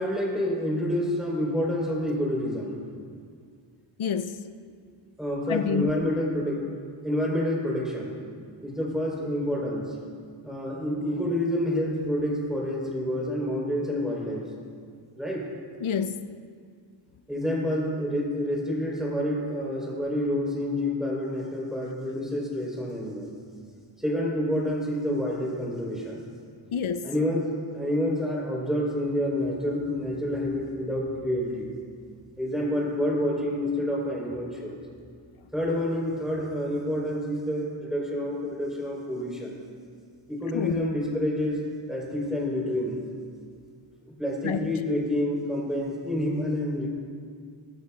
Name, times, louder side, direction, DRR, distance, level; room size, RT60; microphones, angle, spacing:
voice 1, 0.0-2.8 5.2-6.6 7.0-8.2 8.6-9.9 10.4-14.5 15.2-15.5 17.3-23.3 24.0-26.3 27.0-27.5 27.7-31.7 32.4-34.8 35.5-39.6 40.3-41.6 41.9-43.0 44.1-46.9, left 1 dB, ahead, 3.9 m, -28 dB
voice 2, 4.0-4.5 5.5-6.0 15.8-16.4 26.7-27.1 40.5-40.9 44.4-44.7, left 7 dB, 85° left, 0.7 m, -28 dB
22.0 x 12.0 x 2.4 m
wide cardioid pair, 85°, 47 cm